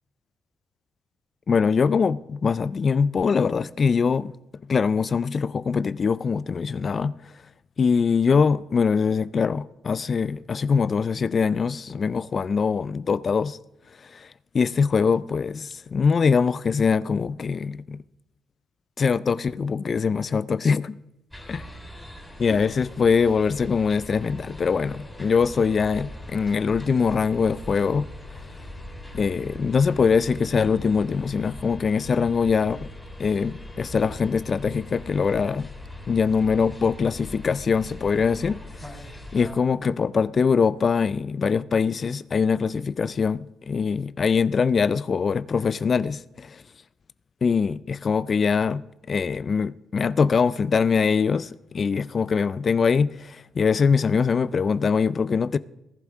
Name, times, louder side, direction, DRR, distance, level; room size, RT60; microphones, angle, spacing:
voice 1, 1.5-4.3 4.7-7.3 7.8-13.6 14.0-18.0 19.0-21.0 21.5-21.6 22.4-28.1 29.1-32.9 33.2-35.7 36.1-46.6 47.4-48.8 49.1-55.6, left 5 dB, 40° left, 0.3 m, -23 dB
sound 1, 21.3-39.5, left 1 dB, 5° left, 3.4 m, -41 dB
19.5 x 8.1 x 3.6 m
cardioid pair, 90°, 0 cm